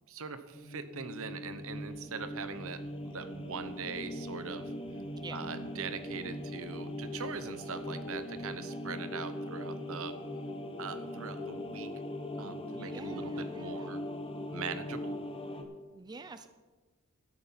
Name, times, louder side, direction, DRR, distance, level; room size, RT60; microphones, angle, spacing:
voice 1, 0.1-4.7 5.3-10.1 10.8-11.9 12.4-14.0 14.5-15.2, right 5 dB, 65° right, 11 dB, 1.0 m, -41 dB
sound 1, 0.5-15.6, left 1 dB, 25° left, 1.1 m, -40 dB
sound 2, 1.4-8.6, left 1 dB, 80° left, 3.2 m, -63 dB
voice 2, 12.8-14.0 15.9-16.5, right 3 dB, 20° right, 10 dB, 0.4 m, -48 dB
12.5 x 9.3 x 5.9 m, 1.3 s
head